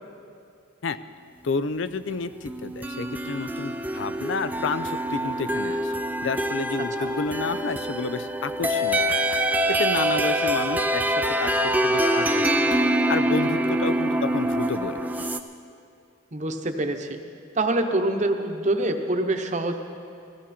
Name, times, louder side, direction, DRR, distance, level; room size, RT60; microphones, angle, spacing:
voice 1, 1.4-5.9 6.2-9.2 9.7-11.5 11.8-12.7 13.1-15.3, left 4 dB, 70° left, 13 dB, 0.5 m, -30 dB
sound 1, 2.4-15.4, right 1 dB, 10° right, 0.4 m, -25 dB
voice 2, 16.3-17.2 17.5-19.8, right 2 dB, 35° right, 5 dB, 0.9 m, -25 dB
17.0 x 14.5 x 4.3 m, 2.5 s
head